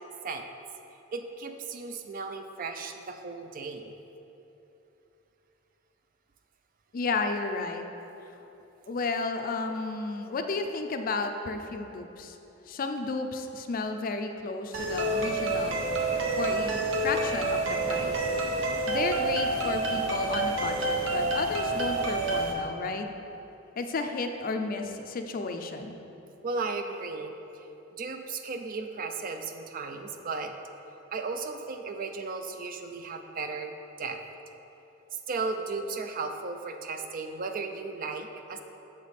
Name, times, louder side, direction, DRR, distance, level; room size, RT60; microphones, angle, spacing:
voice 1, 1.1-3.9 26.4-27.6 27.9-30.5 31.1-33.7 34.0-34.2 35.1-38.6, right 4 dB, 45° right, 6 dB, 0.4 m, -35 dB
voice 2, 6.9-7.9 8.9-12.4 12.7-15.8 16.4-18.3 18.9-23.1 23.8-26.0, left 3 dB, 45° left, 6 dB, 0.4 m, -32 dB
sound 1, 14.7-22.5, right 2 dB, 70° right, 0.7 m, -28 dB
7.0 x 5.0 x 4.1 m, 3.0 s
head